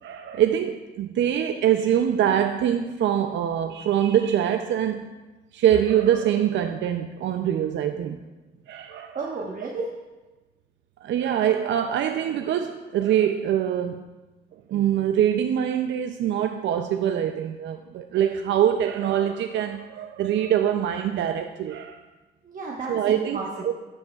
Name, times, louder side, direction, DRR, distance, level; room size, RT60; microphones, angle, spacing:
voice 1, 0.0-5.1 5.5-8.2 8.7-9.2 11.0-14.0 14.7-22.0 22.9-23.4 23.6-23.7, right 10 dB, 65° right, 6 dB, 0.5 m, -24 dB
voice 2, 9.1-9.9 22.4-23.7, right 3 dB, 40° right, -3 dB, 1.1 m, -33 dB
12.5 x 7.6 x 2.3 m, 1.2 s
cardioid pair, 90°, 20 cm